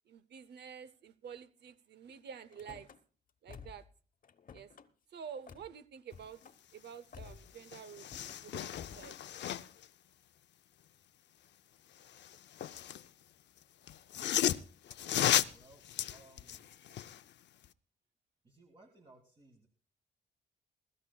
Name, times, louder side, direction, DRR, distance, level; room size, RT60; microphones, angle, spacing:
voice 1, 0.1-2.9 3.4-3.9 4.5-4.7 5.1-6.4 6.7-9.2, right 7 dB, 65° right, 0.7 m, -49 dB
Car / Slam, 2.5-3.0 3.5-3.9 4.2-4.9 5.5-5.7 6.1-6.6 7.1-7.5 8.0-8.4 8.7-9.1, left 6 dB, 45° left, 1.0 m, -52 dB
sound 1, 7.2-7.3 7.6-9.9 12.0-13.1 13.9-17.2 17.6-17.7, left 11 dB, 70° left, 0.6 m, -34 dB
voice 2, 15.5-15.8 16.1-16.7 18.4-19.7, right 2 dB, 30° right, 2.0 m, -61 dB
22.5 x 13.0 x 2.3 m
cardioid pair, 120°, 19 cm